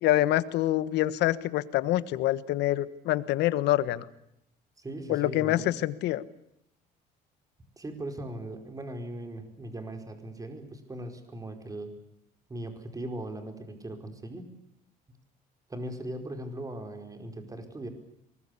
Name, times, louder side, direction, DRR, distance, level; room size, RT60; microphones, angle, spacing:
voice 1, 0.0-4.1 5.1-6.2, left 15 dB, 85° left, 15 dB, 1.4 m, -26 dB
voice 2, 4.8-5.8 7.8-11.9 12.5-14.5 15.7-17.9, right 1 dB, 20° right, 7 dB, 4.9 m, -39 dB
24.0 x 21.0 x 8.4 m, 0.77 s
cardioid pair, 110°, 17 cm